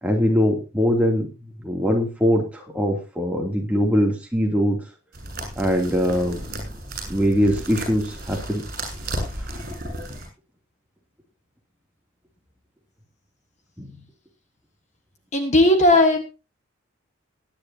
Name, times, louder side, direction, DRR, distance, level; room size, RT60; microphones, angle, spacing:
voice 1, 0.0-1.3 1.6-4.8 5.6-6.4 7.1-8.6 13.8-13.9, equal, 5° right, 0 dB, 2.9 m, -22 dB
sound 1, 5.1-10.3, right 1 dB, 45° right, 6.6 m, -33 dB
voice 2, 15.3-16.2, left 1 dB, 35° left, 6 dB, 1.4 m, -16 dB
19.5 x 10.0 x 2.8 m, 0.30 s
head